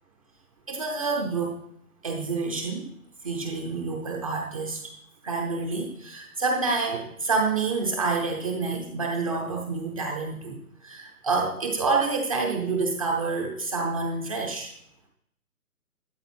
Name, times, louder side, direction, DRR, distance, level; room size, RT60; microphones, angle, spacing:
voice 1, 0.7-1.5 2.0-2.9 3.2-4.8 5.2-14.7, right 4 dB, 25° right, 1 dB, 0.8 m, -28 dB
13.0 x 7.8 x 4.3 m, 0.74 s
figure-of-eight pair, 150°, 45 cm